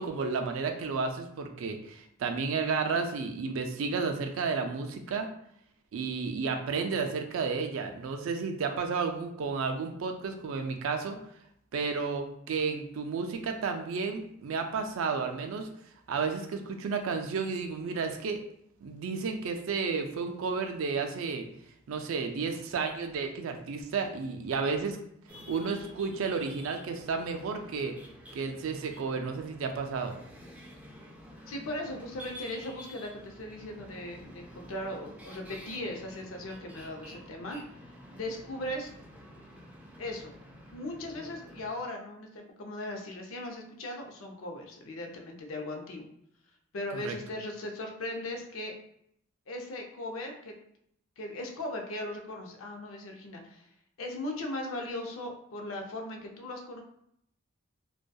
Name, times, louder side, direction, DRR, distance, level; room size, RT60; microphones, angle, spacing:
voice 1, 0.0-5.3 5.9-11.2 11.7-15.7 16.1-18.4 18.8-21.5 21.9-25.0 25.5-27.9 28.3-30.1 46.9-47.1, right 5 dB, 80° right, 5 dB, 0.4 m, -32 dB
sound 1, 25.3-41.7, equal, 5° right, 0.4 m, -50 dB
voice 2, 31.5-37.6 38.1-38.9 40.0-40.3 40.7-46.1 46.7-48.8 49.5-50.5 51.2-53.7 54.0-56.8, left 1 dB, 90° left, 2 dB, 0.5 m, -38 dB
2.7 x 2.2 x 2.2 m, 0.72 s
head